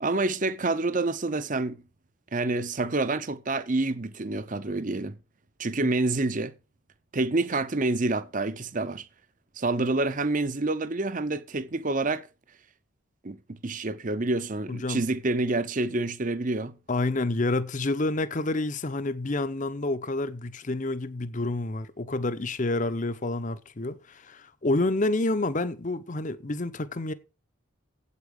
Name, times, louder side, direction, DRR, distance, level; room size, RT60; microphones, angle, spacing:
voice 1, 0.0-1.8 2.3-5.2 5.6-6.5 7.1-9.1 9.6-12.2 13.2-16.7, right 2 dB, 40° right, 0.7 m, -27 dB
voice 2, 14.7-15.0 16.9-27.1, left 2 dB, 40° left, 0.7 m, -28 dB
8.3 x 8.2 x 6.5 m
head